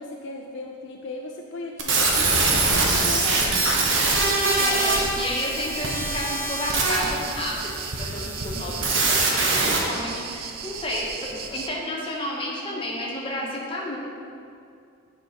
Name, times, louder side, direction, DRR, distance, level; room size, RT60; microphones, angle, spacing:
voice 1, 0.0-3.7, left 2 dB, 55° left, 1 dB, 0.4 m, -36 dB
sound 1, 1.8-9.8, right 3 dB, 65° right, 1.0 m, -23 dB
sound 2, 2.2-11.7, right 6 dB, 45° right, 0.4 m, -36 dB
voice 2, 4.5-14.0, left 1 dB, 25° left, -3 dB, 1.1 m, -31 dB
7.6 x 5.4 x 4.1 m, 2.4 s
head